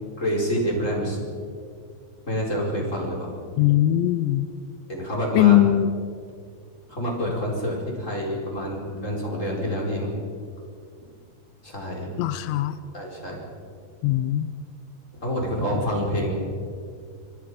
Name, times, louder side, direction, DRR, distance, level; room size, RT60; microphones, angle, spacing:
voice 1, 0.2-1.2 2.3-3.4 4.9-5.6 6.9-10.1 11.6-12.1 12.9-13.4 15.2-16.3, equal, 15° left, -2 dB, 4.5 m, -27 dB
voice 2, 3.6-4.5 5.4-5.9 12.2-12.8 14.0-14.7, left 13 dB, 80° left, 12 dB, 2.8 m, -20 dB
25.0 x 25.0 x 5.1 m, 2.1 s
omnidirectional pair, 5.5 m